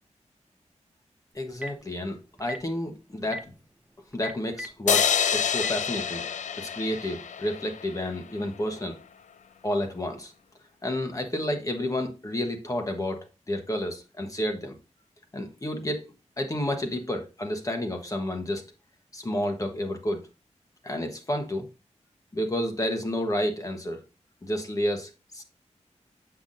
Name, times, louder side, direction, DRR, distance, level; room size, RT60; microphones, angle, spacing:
voice 1, 1.3-3.4 4.1-6.2 6.6-9.0 9.6-10.3 10.8-13.2 13.5-14.8 15.3-18.6 19.1-20.2 20.8-21.7 22.3-24.0 24.4-25.4, left 1 dB, 30° left, 4 dB, 1.3 m, -30 dB
Telephone, 1.4-1.8 2.4-2.6 3.2-3.4 4.1-5.0 5.5-5.7, equal, 10° right, 0.6 m, -35 dB
sound 1, 4.9-8.2, left 7 dB, 85° left, 0.4 m, -27 dB
8.0 x 5.9 x 2.6 m, 0.31 s
wide cardioid pair, 120°, 12 cm